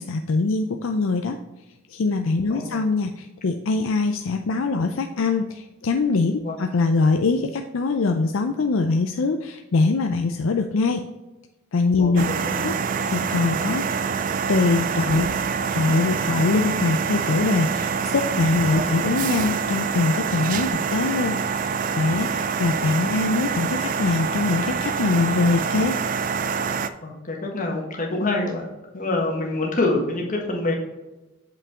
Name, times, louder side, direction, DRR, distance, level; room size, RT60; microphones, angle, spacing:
voice 1, 0.0-1.4 1.9-11.0 11.7-12.3 12.6-12.7 13.0-13.8 14.5-15.3 15.7-26.0, left 3 dB, 65° left, 5 dB, 0.5 m, -23 dB
voice 2, 12.0-12.7 18.7-18.9 27.0-30.7, left 2 dB, 40° left, 0 dB, 1.4 m, -26 dB
sound 1, 12.2-26.9, right 6 dB, 40° right, 0.3 m, -26 dB
7.2 x 5.5 x 3.6 m, 1.1 s
head